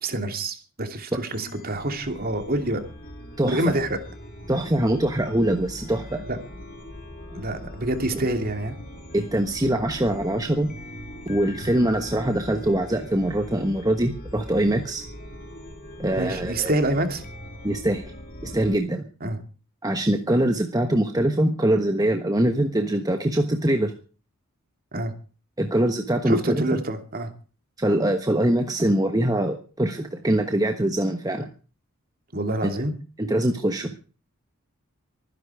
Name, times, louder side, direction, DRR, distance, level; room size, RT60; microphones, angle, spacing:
voice 1, 0.0-2.8 3.5-4.0 6.3-6.4 7.3-8.7 11.6-11.7 16.2-17.2 19.2-19.4 24.9-25.1 26.3-27.3 32.3-32.9, right 1 dB, 45° right, 6 dB, 2.7 m, -27 dB
Chime, 1.3-18.7, left 1 dB, 40° left, 3.1 m, -41 dB
voice 2, 3.4-3.7 4.5-6.2 9.1-10.7 11.3-15.0 16.0-16.8 17.6-18.0 18.4-19.0 19.8-23.9 25.6-26.6 27.8-31.5 32.6-32.7 33.2-33.9, right 1 dB, 15° right, 5 dB, 1.2 m, -23 dB
24.0 x 10.5 x 4.8 m, 0.38 s
head